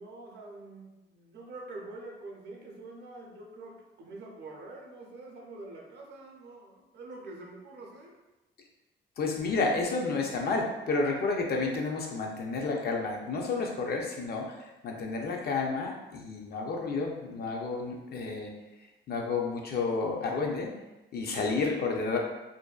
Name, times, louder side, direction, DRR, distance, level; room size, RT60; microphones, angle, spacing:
voice 1, 0.0-8.2, right 2 dB, 60° right, 0 dB, 0.6 m, -46 dB
voice 2, 9.2-18.5 19.1-20.7 21.1-22.2, left 3 dB, 50° left, 0 dB, 0.5 m, -31 dB
2.6 x 2.2 x 2.3 m, 1.0 s
cardioid pair, 90°, 20 cm